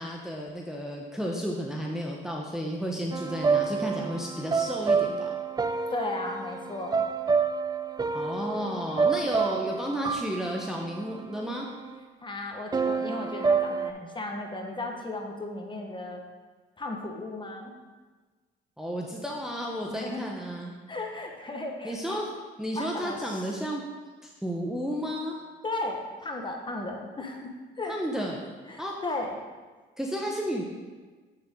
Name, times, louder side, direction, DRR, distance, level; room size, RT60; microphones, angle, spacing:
voice 1, 0.0-5.4 8.1-11.7 18.8-20.7 21.8-22.3 22.6-23.8 24.2-25.3 27.9-28.4 28.8-28.9 30.0-30.6, equal, ahead, -1 dB, 0.8 m, -32 dB
sound 1, 3.1-11.9 12.7-13.9, right 5 dB, 20° right, 0.3 m, -28 dB
voice 2, 5.9-7.0 12.2-16.2 16.8-17.7 19.9-20.2 20.9-22.2 22.7-23.2 25.6-28.0 28.7-29.4, left 2 dB, 25° left, 2 dB, 1.2 m, -35 dB
7.6 x 6.7 x 3.7 m, 1.3 s
cardioid pair, 90°, 20 cm